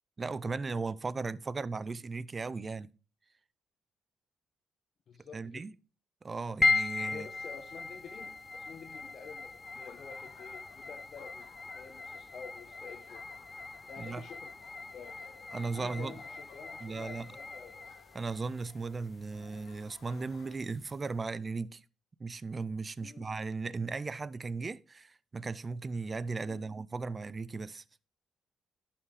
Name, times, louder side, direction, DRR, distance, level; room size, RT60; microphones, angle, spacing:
voice 1, 0.2-2.9 5.3-5.7 6.2-7.3 14.0-14.2 15.5-16.1 16.8-17.3 18.1-21.8 22.2-27.8, right 4 dB, 30° right, 0.6 m, -37 dB
voice 2, 5.1-5.6 7.1-11.5 11.7-13.2 13.9-14.5 14.9-15.2 15.7-17.7 23.0-23.3 26.4-26.6, left 6 dB, 55° left, 1.3 m, -49 dB
sound 1, 6.6-21.1, left 3 dB, 25° left, 0.5 m, -38 dB
Laughter, 9.6-20.5, left 7 dB, 90° left, 1.7 m, -59 dB
11.0 x 6.0 x 4.8 m
cardioid pair, 90°, 0 cm